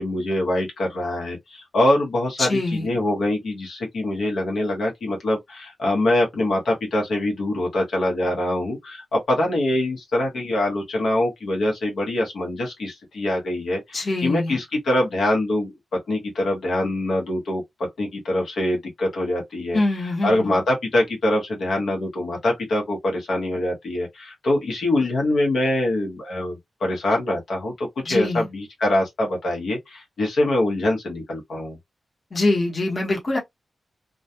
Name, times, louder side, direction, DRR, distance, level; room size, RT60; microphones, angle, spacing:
voice 1, 0.0-19.8 20.2-31.8, left 1 dB, 75° left, 0.9 m, -24 dB
voice 2, 2.4-2.9 13.9-14.6 19.7-20.6 28.0-28.4 32.3-33.4, left 2 dB, 35° left, 1.0 m, -24 dB
2.3 x 2.1 x 2.6 m
wide cardioid pair, 145°, 0 cm